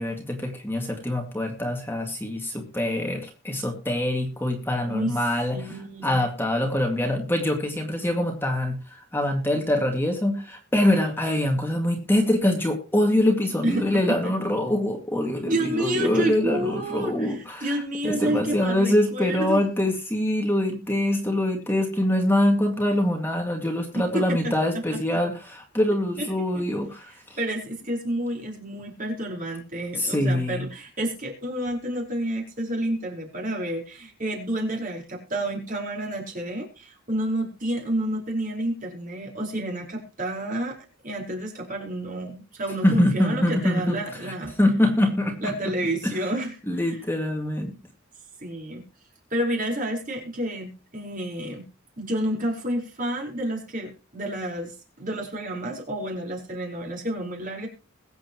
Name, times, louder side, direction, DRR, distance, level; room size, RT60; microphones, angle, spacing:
voice 1, 0.0-5.8 6.0-27.4 30.0-30.6 42.8-44.0 44.2-44.3 44.6-45.7 46.0-46.2 46.7-47.7, left 1 dB, 10° left, 2 dB, 2.1 m, -24 dB
voice 2, 4.8-5.1 5.5-6.2 13.6-14.3 15.4-19.7 23.9-24.8 25.1-25.2 26.2-26.3 26.5-26.6 27.4-40.8 41.0-44.5 45.4-46.5 46.9-47.0 48.4-48.8 49.3-51.6 52.0-57.7, right 1 dB, 40° right, 0 dB, 4.7 m, -30 dB
22.0 x 8.1 x 3.1 m, 0.33 s
head